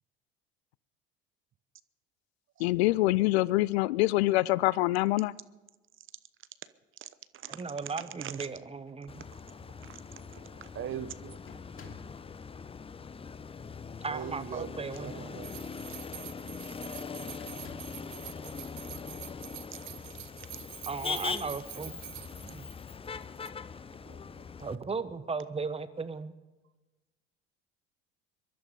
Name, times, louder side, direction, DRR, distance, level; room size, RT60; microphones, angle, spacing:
voice 1, 2.6-5.3, left 18 dB, 75° left, 0.5 m, -25 dB
voice 2, 7.0-8.5 9.0-11.4 14.0-15.8 18.1-18.2 20.1-20.2 24.1-24.8, right 9 dB, 40° right, 0.9 m, -43 dB
voice 3, 7.6-9.2 14.0-15.4 18.0-18.5 20.9-22.0 22.4-22.7 24.6-26.3, right 4 dB, 20° right, 1.2 m, -37 dB
sound 1, 8.2-9.1 10.0-10.1 10.4-10.8 11.5-12.2 14.6-15.5 16.0-16.3 17.4-18.1, left 4 dB, 40° left, 2.8 m, -55 dB
Motor vehicle (road), 9.1-24.8, left 5 dB, 15° left, 0.6 m, -41 dB
sound 2, 15.4-23.1 23.4-23.5, right 24 dB, 60° right, 0.6 m, -47 dB
23.0 x 12.0 x 5.3 m
hypercardioid pair, 65°, 32 cm